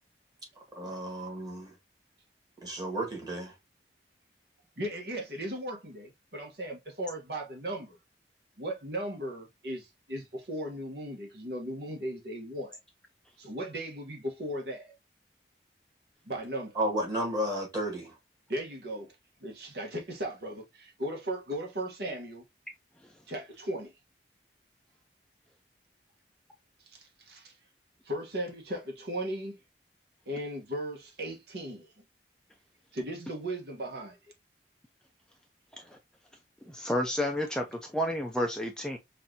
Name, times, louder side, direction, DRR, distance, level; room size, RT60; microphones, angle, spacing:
voice 1, 0.7-1.7 2.6-3.5 16.8-18.1, right 1 dB, 25° right, 1.8 m, -32 dB
voice 2, 4.8-8.0 8.6-12.8 13.4-14.9 16.2-16.8 18.5-19.1 19.4-22.4 23.3-23.9 26.9-27.5 28.0-29.6 30.3-31.9 32.9-34.2, right 1 dB, 65° right, 1.2 m, -37 dB
voice 3, 36.7-39.0, left 1 dB, 5° left, 0.4 m, -31 dB
5.6 x 2.6 x 2.7 m
head